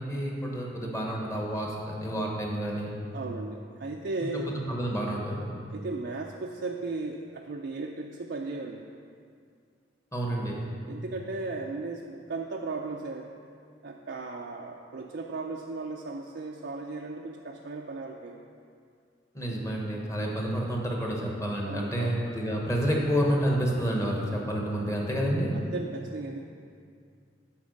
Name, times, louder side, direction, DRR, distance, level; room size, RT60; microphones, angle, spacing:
voice 1, 0.0-2.9 4.5-5.5 10.1-10.6 19.3-25.5, equal, 15° left, -1 dB, 1.1 m, -29 dB
voice 2, 3.1-4.5 5.7-8.8 10.9-13.3 13.8-18.4 21.6-22.2 25.5-26.4, right 3 dB, 65° right, 0 dB, 0.5 m, -36 dB
8.6 x 4.7 x 6.4 m, 2.3 s
head